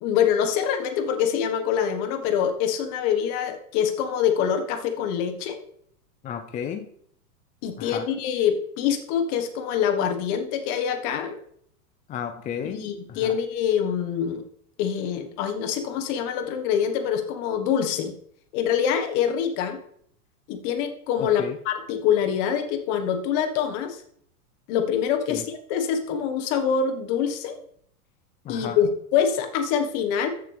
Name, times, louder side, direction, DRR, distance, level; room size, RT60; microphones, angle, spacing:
voice 1, 0.0-5.6 7.6-11.4 12.7-14.4 14.8-18.1 18.5-19.8 20.5-24.0 24.7-27.6 28.5-30.3, left 8 dB, 50° left, 7 dB, 1.6 m, -25 dB
voice 2, 6.2-6.9 7.8-8.0 12.1-12.8 13.1-13.2 21.2-21.5 25.3-25.4 28.5-28.8, left 8 dB, 20° left, 6 dB, 0.5 m, -32 dB
14.0 x 6.6 x 3.5 m, 0.67 s
hypercardioid pair, 120°, 44 cm